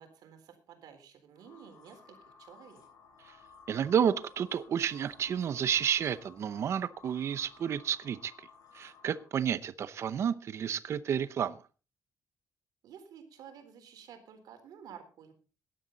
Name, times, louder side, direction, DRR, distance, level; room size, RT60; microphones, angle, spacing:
voice 1, 0.0-2.8 12.8-15.3, right 7 dB, 75° right, 3.9 m, -52 dB
sound 1, 1.3-9.4, left 6 dB, 60° left, 7.7 m, -57 dB
voice 2, 3.7-8.5 8.7-11.6, right 8 dB, 45° right, 0.7 m, -31 dB
17.0 x 11.5 x 4.0 m
cardioid pair, 175°, 7 cm